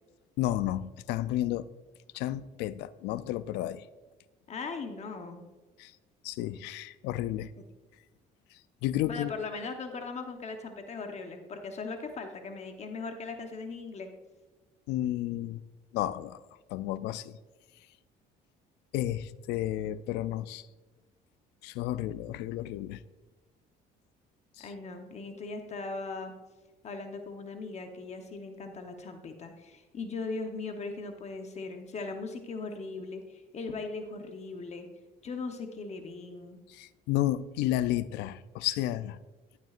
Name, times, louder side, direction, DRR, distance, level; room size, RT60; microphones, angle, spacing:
voice 1, 0.4-1.7 2.1-3.8 5.8-5.9 6.2-7.5 8.8-9.3 14.9-15.6 15.9-16.4 16.7-17.3 18.9-20.6 21.6-23.0 24.6-24.7 36.7-39.2, left 13 dB, 90° left, 0.4 m, -32 dB
voice 2, 4.5-5.4 9.0-14.1 24.6-26.3 26.8-34.9 35.2-36.6, left 3 dB, 40° left, 0.9 m, -39 dB
11.5 x 9.1 x 2.5 m
cardioid pair, 110°, 17 cm